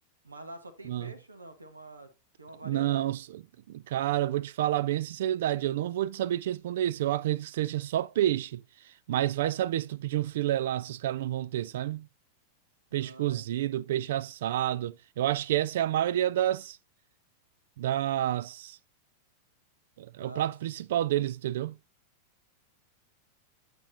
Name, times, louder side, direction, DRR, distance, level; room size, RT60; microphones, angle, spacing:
voice 1, 0.2-2.1 2.4-3.1 12.9-13.4 20.2-20.5, right 1 dB, 80° right, 1.2 m, -46 dB
voice 2, 2.6-3.4 3.7-8.6 9.1-12.1 12.9-16.8 17.8-18.8 20.0-21.8, right 12 dB, 55° right, 0.3 m, -29 dB
8.9 x 6.1 x 2.7 m
figure-of-eight pair, 90°, 0 cm